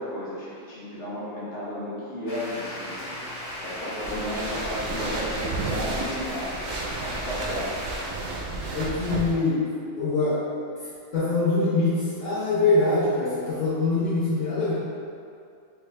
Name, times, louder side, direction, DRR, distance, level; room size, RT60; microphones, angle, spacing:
voice 1, 0.0-6.6 7.0-7.9 9.0-9.2, left 1 dB, 55° left, -9 dB, 1.3 m, -34 dB
sound 1, 2.3-8.2, equal, 35° left, 0.7 m, -36 dB
sound 2, 4.0-9.3, right 3 dB, 65° right, 0.8 m, -32 dB
voice 2, 8.7-9.6 10.0-10.4 11.1-11.9 12.2-14.7, left 3 dB, 70° left, -11 dB, 1.1 m, -23 dB
4.4 x 2.3 x 3.1 m, 2.4 s
omnidirectional pair, 1.3 m